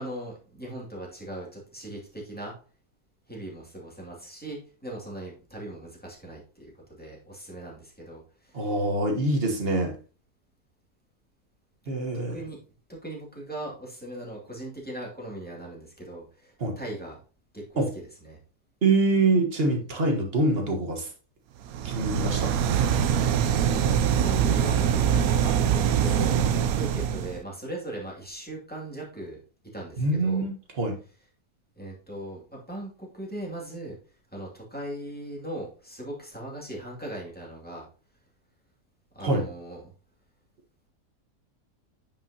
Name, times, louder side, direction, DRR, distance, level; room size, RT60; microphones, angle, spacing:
voice 1, 0.0-2.5 3.3-8.7 12.3-12.6 12.9-17.2 17.5-18.4 19.7-20.1 22.9-29.4 29.7-30.5 31.8-34.0 34.3-37.8 39.1-39.9, right 1 dB, 5° left, -3 dB, 2.3 m, -39 dB
voice 2, 8.5-9.9 11.9-12.3 16.6-16.7 17.8-17.9 18.8-21.1 21.8-22.6 30.0-31.0 39.2-39.4, right 2 dB, 40° right, 3 dB, 1.5 m, -25 dB
sound 1, 21.7-27.4, right 8 dB, 70° right, 1.0 m, -23 dB
9.1 x 5.2 x 2.8 m, 0.38 s
omnidirectional pair, 1.7 m